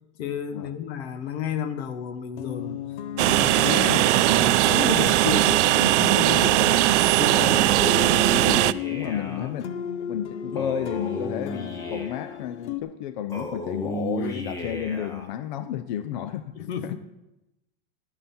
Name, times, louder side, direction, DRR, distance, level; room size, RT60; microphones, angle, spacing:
voice 1, 0.2-2.8 3.2-7.7 9.1-9.5 14.2-14.3 16.6-17.0, left 7 dB, 70° left, 11 dB, 1.2 m, -32 dB
sound 1, 2.4-12.8, left 8 dB, 85° left, 1.0 m, -35 dB
Train, 3.2-8.7, right 16 dB, 90° right, 0.5 m, -19 dB
Male speech man speaking, 7.3-9.5 10.5-12.4 13.3-15.3, equal, 10° left, 0.7 m, -34 dB
voice 2, 8.3-9.7 10.0-16.5 16.8-17.0, left 10 dB, 45° left, 13 dB, 0.5 m, -32 dB
12.5 x 9.1 x 4.3 m, 0.96 s
supercardioid pair, 170°, 34 cm